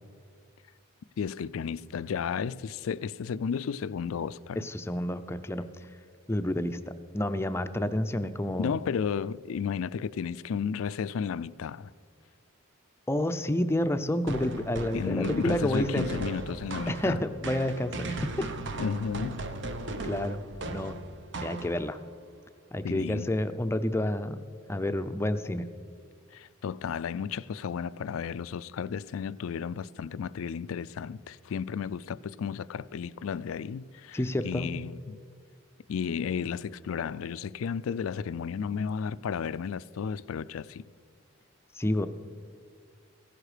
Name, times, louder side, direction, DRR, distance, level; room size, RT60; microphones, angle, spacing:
voice 1, 1.2-4.7 8.6-11.9 14.9-17.2 18.8-19.4 22.8-23.3 26.3-34.2 34.4-35.2 35.9-40.8, left 6 dB, 80° left, 0.4 m, -33 dB
voice 2, 4.6-5.6 6.3-6.8 7.1-8.7 13.1-16.1 16.9-18.4 20.0-20.4 20.7-21.0 21.4-22.0 22.7-24.4 24.7-25.7 34.1-34.7 41.7-42.1, left 1 dB, 10° left, 0.5 m, -29 dB
sound 1, 14.3-22.1, right 2 dB, 55° right, 0.8 m, -37 dB
15.5 x 11.0 x 5.0 m
head